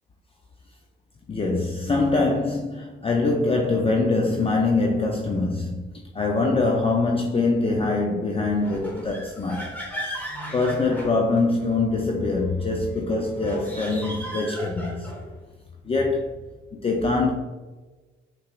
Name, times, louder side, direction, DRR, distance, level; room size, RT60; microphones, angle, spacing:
voice 1, 1.3-5.9 6.1-9.7 10.2-10.3 10.5-15.1 15.9-16.3 16.7-17.3, left 3 dB, 30° left, 0.6 m, -23 dB
sound 1, 8.6-11.7 13.3-15.3, equal, 10° left, 1.3 m, -36 dB
5.6 x 3.3 x 2.5 m
cardioid pair, 90°, 20 cm